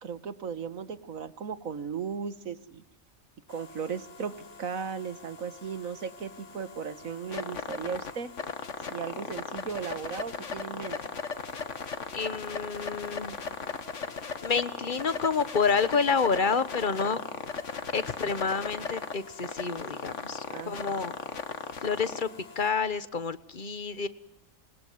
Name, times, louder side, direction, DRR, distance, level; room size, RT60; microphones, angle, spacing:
voice 1, 0.0-2.8 3.5-8.3 8.9-11.0 20.5-21.0, right 6 dB, 80° right, 13 dB, 1.8 m, -36 dB
sound 1, 3.5-22.7, left 5 dB, 60° left, 1.9 m, -38 dB
voice 2, 12.1-13.4 14.4-17.2 17.9-21.1 21.8-22.3 22.5-24.1, left 5 dB, 40° left, 14 dB, 1.4 m, -29 dB
27.5 x 22.0 x 9.5 m, 0.79 s
omnidirectional pair, 1.4 m